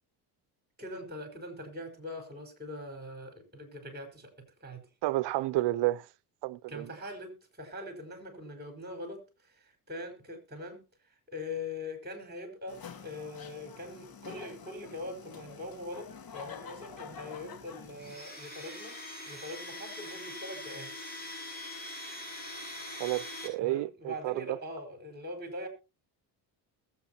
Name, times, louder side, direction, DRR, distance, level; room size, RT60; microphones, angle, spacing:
voice 1, 0.8-4.9 6.7-19.0 19.2-21.0 23.6-25.7, left 1 dB, 20° right, 4.8 m, -42 dB
voice 2, 5.0-6.1 6.4-6.9 23.0-24.6, right 17 dB, 70° right, 0.7 m, -31 dB
sound 1, 12.7-18.2, left 6 dB, 55° left, 2.3 m, -47 dB
Domestic sounds home sounds, 18.0-23.5, left 1 dB, 20° left, 7.0 m, -42 dB
21.0 x 8.0 x 2.9 m
cardioid pair, 95°, 44 cm